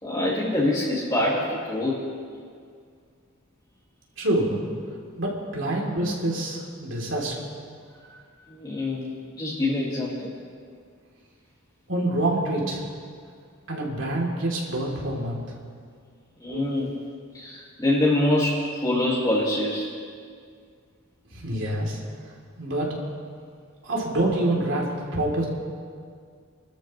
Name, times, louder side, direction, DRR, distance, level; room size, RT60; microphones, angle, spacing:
voice 1, 0.0-2.0 8.1-8.2 8.5-9.1 9.4-10.3 16.4-17.0 17.3-19.9, left 1 dB, 20° left, -7 dB, 2.2 m, -25 dB
voice 2, 4.2-4.6 5.2-7.4 11.9-12.8 13.7-15.4 16.5-16.6 21.3-22.0 22.6-22.9 23.8-24.9 25.1-25.4, right 1 dB, 65° right, -3 dB, 3.4 m, -26 dB
28.0 x 13.0 x 3.3 m, 2.1 s
head